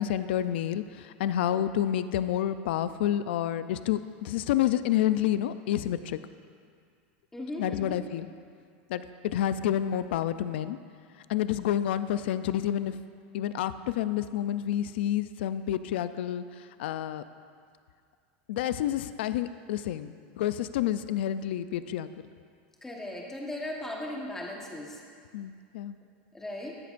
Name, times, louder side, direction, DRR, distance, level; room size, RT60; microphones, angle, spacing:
voice 1, 0.0-6.2 7.6-8.3 8.9-10.8 11.3-13.0 13.3-16.4 16.8-17.2 18.5-22.1 25.3-26.0, left 11 dB, 80° left, 13 dB, 0.4 m, -29 dB
voice 2, 7.3-8.0 22.8-25.0 26.3-26.7, left 1 dB, 5° left, -1 dB, 1.2 m, -37 dB
13.5 x 10.5 x 2.5 m, 2.2 s
supercardioid pair, 150°, 6 cm